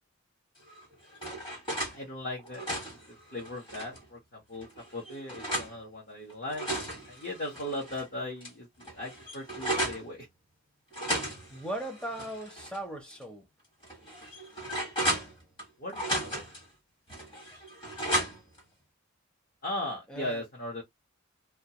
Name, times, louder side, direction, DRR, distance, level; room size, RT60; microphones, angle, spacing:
sound 1, 0.7-2.0 2.4-4.0 4.6-5.7 6.3-8.0 8.4-8.5 8.8-10.0 10.9-12.8 13.1-13.2 13.8-15.6 15.9-16.6 17.1-18.6, right 1 dB, 25° left, 1.1 m, -34 dB
voice 1, 1.9-10.3 15.8-16.4 19.6-20.8, left 1 dB, 45° left, 0.9 m, -38 dB
voice 2, 11.5-13.4 20.1-20.4, right 1 dB, 5° left, 0.6 m, -38 dB
2.3 x 2.2 x 2.8 m
head